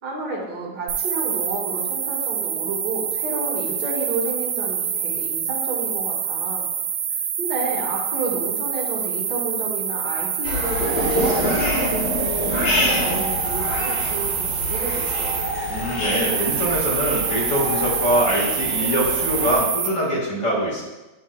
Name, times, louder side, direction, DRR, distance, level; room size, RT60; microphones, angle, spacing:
voice 1, 0.0-6.7 7.1-12.5 12.8-15.4, right 2 dB, 55° right, -5 dB, 2.3 m, -30 dB
sound 1, 0.9-19.9, right 8 dB, 75° right, 1.2 m, -26 dB
sound 2, 10.4-19.6, left 1 dB, 60° left, 2.3 m, -26 dB
voice 2, 15.7-20.8, equal, 40° left, -5 dB, 2.0 m, -23 dB
9.5 x 4.6 x 2.3 m, 1.1 s
omnidirectional pair, 2.1 m